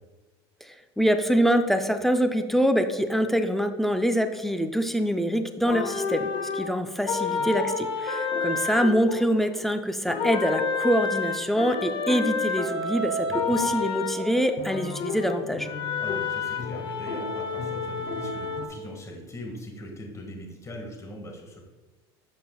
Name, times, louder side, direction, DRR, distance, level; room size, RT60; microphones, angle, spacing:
voice 1, 0.6-15.7, equal, ahead, 8 dB, 0.5 m, -25 dB
sound 1, 5.6-9.7 10.1-18.7, left 4 dB, 40° left, 0.9 m, -30 dB
voice 2, 7.1-7.5 13.3-13.6 16.0-21.6, left 1 dB, 20° left, 0 dB, 1.8 m, -41 dB
7.5 x 5.6 x 2.3 m, 1.3 s
hypercardioid pair, 90°, 14 cm